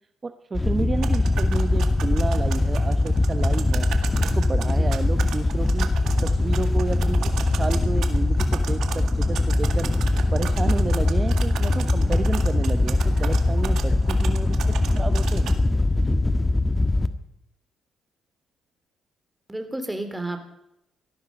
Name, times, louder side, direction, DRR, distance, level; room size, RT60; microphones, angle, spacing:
voice 1, 0.2-3.9 4.2-5.9 6.2-9.9 10.3-15.6 16.0-16.2, right 4 dB, 30° right, 9 dB, 1.0 m, -31 dB
Wind / Boat Water vehicle, 0.5-17.1, left 2 dB, 20° left, 1.4 m, -22 dB
sound 1, 1.0-15.5, right 8 dB, 75° right, 1.9 m, -37 dB
voice 2, 4.6-5.0 19.5-20.4, right 1 dB, 10° right, 7 dB, 3.4 m, -32 dB
18.5 x 13.5 x 5.4 m, 0.79 s
cardioid pair, 90°, 0 cm